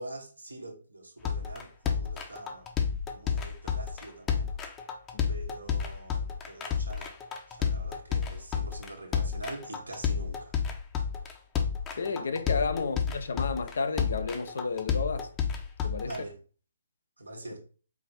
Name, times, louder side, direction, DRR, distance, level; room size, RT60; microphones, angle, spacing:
voice 1, 0.0-2.7 3.1-4.5 5.3-7.1 7.5-10.5 16.0-16.3 17.2-17.6, right 2 dB, 85° right, 1.2 m, -44 dB
sound 1, 1.2-16.2, left 7 dB, 20° left, 0.7 m, -31 dB
voice 2, 11.9-15.3 15.8-16.1, left 4 dB, 65° left, 0.5 m, -31 dB
4.7 x 2.7 x 4.0 m
figure-of-eight pair, 135°, 0 cm